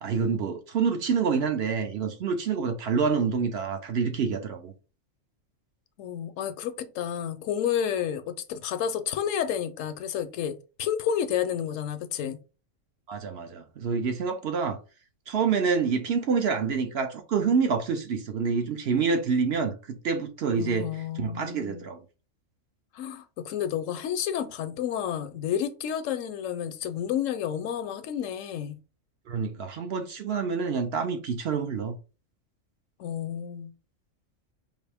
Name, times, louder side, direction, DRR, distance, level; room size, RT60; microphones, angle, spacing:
voice 1, 0.0-4.7 13.1-14.8 15.3-20.9 21.2-22.0 29.3-32.0, right 5 dB, 60° right, 0.8 m, -27 dB
voice 2, 6.0-12.4 20.5-21.9 22.9-28.8 33.0-33.7, left 9 dB, 75° left, 0.9 m, -30 dB
4.9 x 2.6 x 3.4 m
omnidirectional pair, 1.4 m